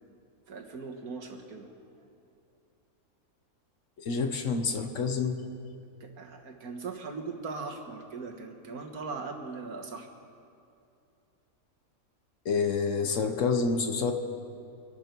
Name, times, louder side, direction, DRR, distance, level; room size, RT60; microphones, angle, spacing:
voice 1, 0.5-1.7 6.0-10.1, right 4 dB, 85° right, 2 dB, 1.9 m, -39 dB
voice 2, 4.0-5.4 12.4-14.1, left 5 dB, 60° left, 6 dB, 1.3 m, -28 dB
24.0 x 12.0 x 4.6 m, 2.6 s
omnidirectional pair, 1.5 m